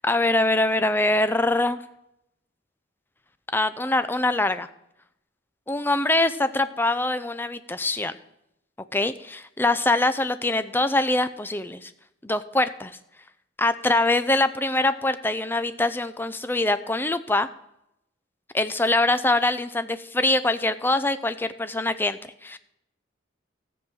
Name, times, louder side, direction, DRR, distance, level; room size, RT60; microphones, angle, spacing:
voice 1, 0.0-1.8 3.5-4.7 5.7-8.1 8.9-11.9 12.2-12.9 13.6-17.5 18.5-22.6, left 2 dB, 10° left, 12 dB, 0.5 m, -23 dB
13.5 x 7.3 x 6.2 m, 0.80 s
head